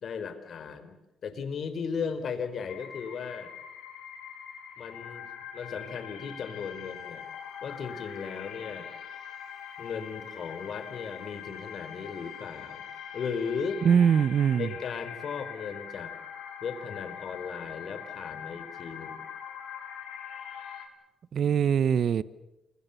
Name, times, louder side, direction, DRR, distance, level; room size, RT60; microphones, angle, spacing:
voice 1, 0.0-1.0 1.2-3.5 4.8-5.2 5.5-7.2 7.6-8.9 9.8-12.9 13.1-13.8 14.6-16.2 16.6-19.2, left 6 dB, 60° left, 10 dB, 4.0 m, -36 dB
sound 1, 2.7-20.9, left 8 dB, 75° left, 5.1 m, -43 dB
voice 2, 13.8-14.7 21.3-22.2, right 7 dB, 60° right, 16 dB, 0.9 m, -22 dB
28.0 x 23.5 x 6.9 m, 0.94 s
cardioid pair, 90°, 0 cm